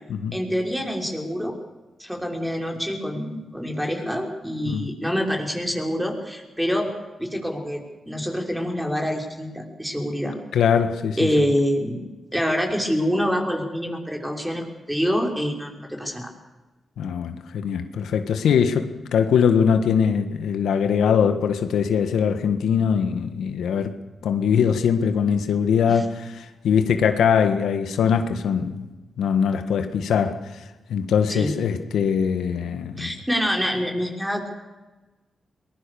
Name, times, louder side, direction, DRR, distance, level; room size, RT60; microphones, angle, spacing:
voice 1, 0.3-1.6 2.0-6.9 7.2-10.4 11.2-16.3 25.9-26.0 31.3-31.6 33.0-34.5, equal, 5° right, 1 dB, 5.9 m, -26 dB
voice 2, 10.5-11.3 17.0-23.9 24.2-28.8 29.2-30.6 30.9-33.2, left 7 dB, 90° left, 8 dB, 1.6 m, -22 dB
22.0 x 21.0 x 7.0 m, 1.2 s
cardioid pair, 55°, 0 cm